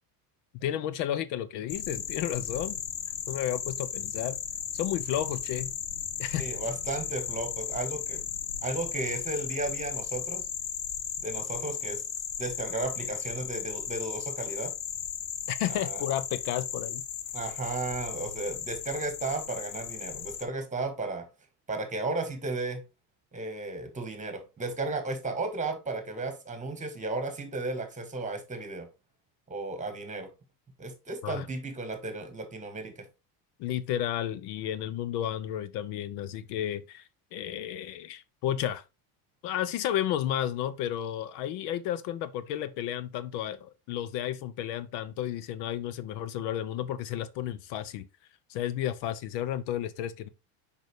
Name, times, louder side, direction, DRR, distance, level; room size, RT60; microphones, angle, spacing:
voice 1, 0.6-2.8 3.3-4.4 4.7-5.7 6.2-6.5 15.5-17.0 31.2-31.5 33.6-38.8 39.4-48.0 48.5-50.3, left 11 dB, 65° left, 0.7 m, -32 dB
sound 1, 1.7-20.4, left 9 dB, 85° left, 1.3 m, -36 dB
voice 2, 6.4-8.2 8.6-10.5 11.2-12.0 12.4-14.7 15.7-16.0 17.3-21.3 21.7-22.8 23.3-28.9 29.5-30.3 30.8-33.1, right 2 dB, 15° right, 1.9 m, -34 dB
6.3 x 5.4 x 3.2 m
supercardioid pair, 115°, 44 cm